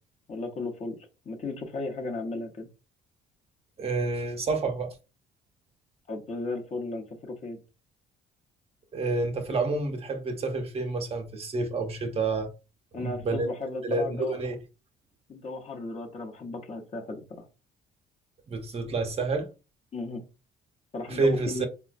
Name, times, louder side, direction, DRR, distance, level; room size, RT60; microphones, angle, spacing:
voice 1, 0.3-1.0 1.2-2.7 6.1-7.6 12.9-14.3 15.3-17.5 19.9-20.3 20.9-21.7, left 2 dB, 40° left, 0.8 m, -35 dB
voice 2, 3.8-5.0 8.9-12.5 12.9-13.5 13.8-14.6 18.5-19.5 21.1-21.7, right 3 dB, 35° right, 0.7 m, -29 dB
4.0 x 2.2 x 2.5 m
cardioid pair, 110°, 17 cm